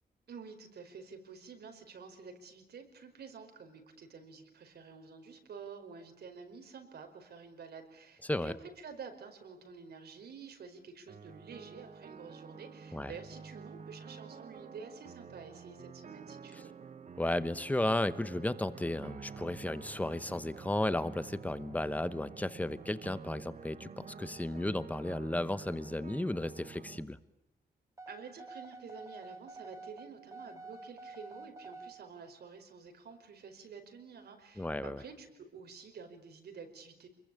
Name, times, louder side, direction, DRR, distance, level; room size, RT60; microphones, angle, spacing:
voice 1, 0.3-16.7 28.1-37.1, right 5 dB, 85° right, 6 dB, 5.0 m, -49 dB
voice 2, 8.2-8.5 12.9-13.1 17.2-27.2 34.6-35.0, left 1 dB, 10° left, 14 dB, 1.0 m, -34 dB
sound 1, 11.1-27.0, right 6 dB, 50° right, 1.4 m, -49 dB
sound 2, 28.0-31.9, right 3 dB, 20° right, 2.9 m, -48 dB
28.5 x 22.0 x 8.5 m, 0.83 s
wide cardioid pair, 175°, 16 cm